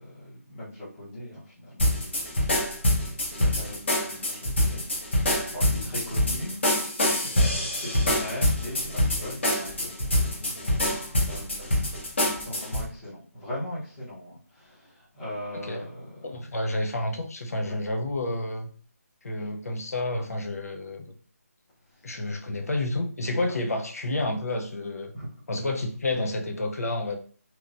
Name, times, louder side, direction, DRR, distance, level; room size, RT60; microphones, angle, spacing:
voice 1, 0.0-2.2 3.0-6.6 7.0-16.1 17.6-17.8 23.4-23.6 25.1-25.3, left 1 dB, 10° left, 0.6 m, -40 dB
sound 1, 1.8-12.8, left 1 dB, 45° left, 0.8 m, -25 dB
voice 2, 16.2-18.7 19.2-21.1 22.0-25.1 25.5-27.2, left 2 dB, 70° left, 0.5 m, -30 dB
2.9 x 2.0 x 2.4 m
figure-of-eight pair, 175°, 9 cm